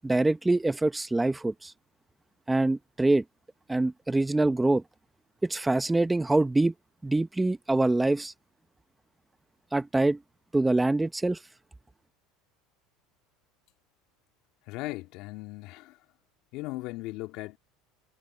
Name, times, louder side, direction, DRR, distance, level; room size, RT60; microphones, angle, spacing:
voice 1, 0.0-1.7 2.5-3.2 3.7-4.8 5.4-6.7 7.0-8.3 9.7-10.2 10.5-11.4, right 2 dB, 10° right, 0.9 m, -25 dB
voice 2, 14.7-16.0 16.5-17.6, left 19 dB, 65° left, 2.6 m, -37 dB
supercardioid pair, 120°, 0 cm